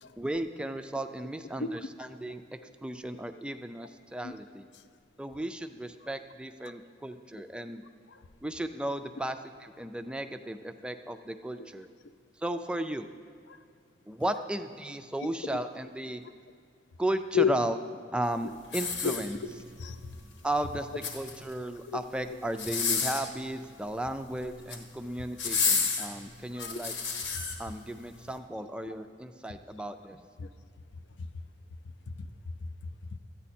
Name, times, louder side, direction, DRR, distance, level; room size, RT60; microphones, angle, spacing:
voice 1, 0.2-2.4 2.8-4.7 5.2-7.8 8.4-11.9 12.4-13.1 14.1-16.2 17.0-17.8 18.1-19.4 20.4-26.9 27.6-30.2, right 1 dB, 5° right, 8 dB, 0.3 m, -35 dB
sound 1, 18.6-19.7 20.8-21.6 22.5-23.3 24.4-24.8 25.4-27.5 28.1-28.3, left 5 dB, 85° left, 1.2 m, -30 dB
voice 2, 32.1-33.2, left 7 dB, 70° left, 11 dB, 0.5 m, -32 dB
12.5 x 8.9 x 4.2 m, 2.3 s
head